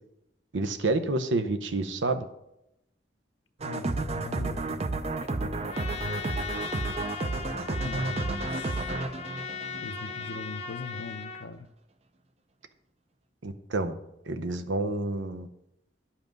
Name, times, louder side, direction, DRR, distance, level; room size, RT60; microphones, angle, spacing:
voice 1, 0.5-2.3 13.4-13.9 14.2-15.5, right 2 dB, 85° right, 0.8 m, -29 dB
voice 2, 3.6-5.7 7.8-8.9 9.7-11.7, left 3 dB, 85° left, 0.6 m, -41 dB
sound 1, 3.6-10.4, right 2 dB, 35° right, 0.5 m, -32 dB
Trumpet, 5.7-11.5, left 5 dB, 35° left, 0.7 m, -38 dB
10.5 x 5.7 x 5.2 m
head